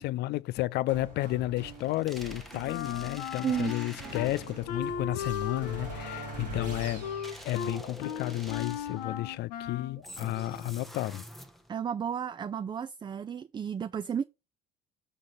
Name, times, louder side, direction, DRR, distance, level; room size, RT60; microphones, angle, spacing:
voice 1, 0.0-7.1 7.4-11.2, left 17 dB, 55° left, 0.4 m, -32 dB
sound 1, 0.9-10.6, right 1 dB, 90° right, 2.1 m, -44 dB
sound 2, 1.7-4.8 7.2-9.1 10.0-11.8, equal, ahead, 0.9 m, -47 dB
Wind instrument woodwind instrument, 2.7-4.3 4.7-10.0, left 8 dB, 75° left, 0.9 m, -37 dB
voice 2, 3.4-3.7 11.7-14.2, right 8 dB, 25° right, 0.4 m, -32 dB
6.4 x 4.0 x 5.1 m
hypercardioid pair, 55°, 20 cm